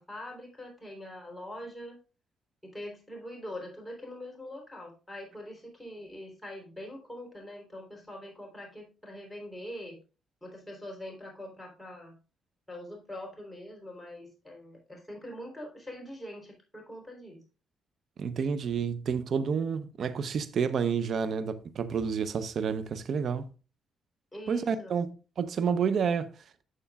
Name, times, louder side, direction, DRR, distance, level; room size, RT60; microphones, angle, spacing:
voice 1, 0.0-2.0 2.6-10.0 10.4-12.2 12.7-17.4 24.3-24.9, left 1 dB, 5° left, 3.8 m, -43 dB
voice 2, 18.2-23.5 24.5-26.3, right 6 dB, 60° right, 0.8 m, -29 dB
11.5 x 6.9 x 2.4 m
cardioid pair, 90°, 0 cm